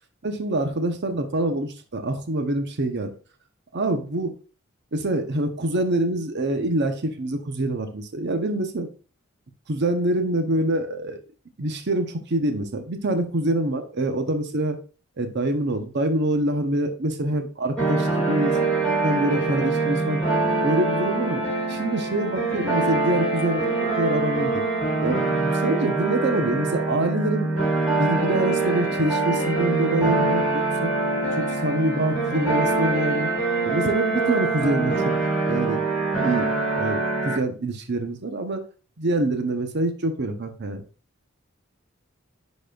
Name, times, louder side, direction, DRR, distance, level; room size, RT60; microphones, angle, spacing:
voice 1, 0.2-3.1 3.7-4.3 4.9-8.9 9.7-11.2 11.6-14.8 15.2-18.6 19.0-20.2 20.6-21.4 21.7-24.6 25.0-27.7 28.0-30.9 31.4-33.3 33.6-35.1 35.4-35.8 36.2-36.5 36.7-38.6 39.0-40.8, right 1 dB, 60° right, 7 dB, 0.8 m, -25 dB
sound 1, 17.8-37.4, right 3 dB, 5° left, 3.5 m, -24 dB
10.0 x 4.1 x 2.4 m, 0.37 s
head